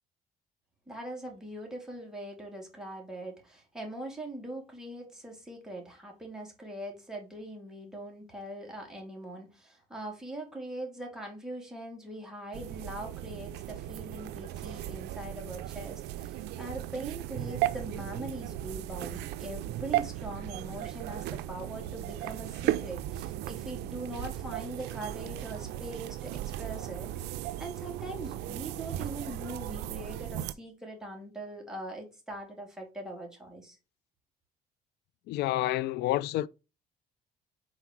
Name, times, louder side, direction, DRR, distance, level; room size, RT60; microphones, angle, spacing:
voice 1, 0.9-33.8, right 1 dB, 5° right, 2.4 m, -42 dB
sound 1, 12.5-30.5, right 13 dB, 80° right, 0.5 m, -36 dB
voice 2, 35.3-36.5, left 15 dB, 75° left, 0.4 m, -29 dB
4.8 x 4.1 x 5.8 m
cardioid pair, 110°, 17 cm